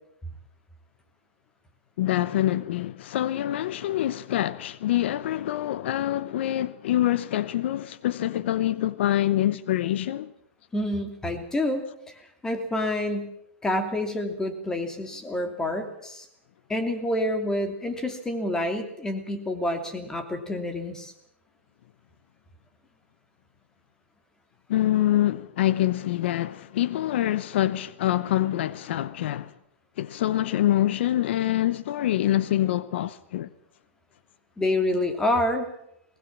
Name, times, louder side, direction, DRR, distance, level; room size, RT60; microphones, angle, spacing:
voice 1, 2.0-10.3 24.7-29.5 30.0-33.5, left 13 dB, 65° left, 0.9 m, -25 dB
voice 2, 10.7-13.3 13.6-16.3 16.7-21.1 34.6-35.7, left 1 dB, 10° left, 2.8 m, -28 dB
22.0 x 20.0 x 7.4 m
hypercardioid pair, 150°, 7 cm